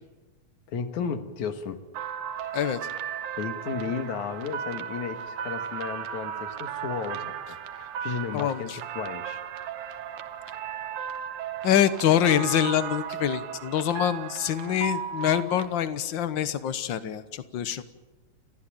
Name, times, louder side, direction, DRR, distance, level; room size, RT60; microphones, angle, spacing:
voice 1, 0.7-1.8 3.4-9.4, left 6 dB, 85° left, 8 dB, 3.0 m, -34 dB
sound 1, 1.9-15.7, right 9 dB, 85° right, 2.5 m, -35 dB
voice 2, 8.3-8.8 11.6-17.8, left 10 dB, 60° left, 13 dB, 1.2 m, -25 dB
29.5 x 14.0 x 9.0 m, 1.2 s
omnidirectional pair, 3.3 m